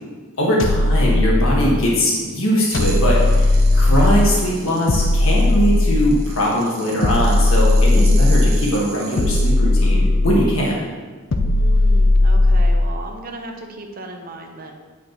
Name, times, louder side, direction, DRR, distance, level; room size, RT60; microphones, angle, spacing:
voice 1, 0.4-10.9, equal, 85° left, -3 dB, 1.5 m, -20 dB
sound 1, 0.6-1.9 2.7-4.4 4.9-6.3 7.0-8.6 9.2-10.6 11.3-12.9, left 2 dB, 65° left, 0.5 m, -16 dB
sound 2, 2.7-9.5, right 4 dB, 85° right, 1.2 m, -38 dB
voice 2, 11.4-14.7, right 2 dB, 45° right, 3 dB, 0.8 m, -36 dB
8.0 x 6.1 x 2.9 m, 1.4 s
head